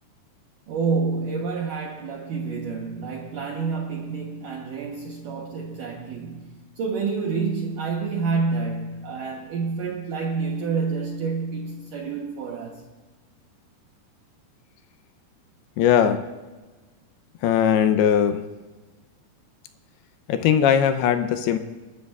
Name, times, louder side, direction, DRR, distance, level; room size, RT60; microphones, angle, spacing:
voice 1, 0.7-12.8, right 4 dB, 70° right, 2.1 m, -28 dB
voice 2, 15.8-16.2 17.4-18.4 20.3-21.6, left 8 dB, 80° left, 2.5 m, -19 dB
29.5 x 13.0 x 2.4 m
omnidirectional pair, 4.9 m